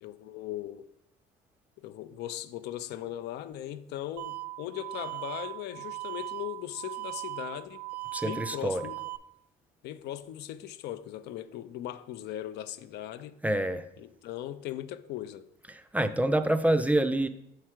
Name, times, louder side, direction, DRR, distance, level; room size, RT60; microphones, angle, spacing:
voice 1, 0.0-0.9 1.8-7.8 8.3-9.0 9.8-13.4 14.0-15.4, left 12 dB, 80° left, 0.5 m, -39 dB
sound 1, 4.2-9.2, right 20 dB, 85° right, 0.4 m, -39 dB
voice 2, 8.1-8.8 13.4-13.9 15.7-17.3, right 1 dB, 10° right, 0.4 m, -27 dB
6.5 x 4.8 x 4.4 m
cardioid pair, 110°, 17 cm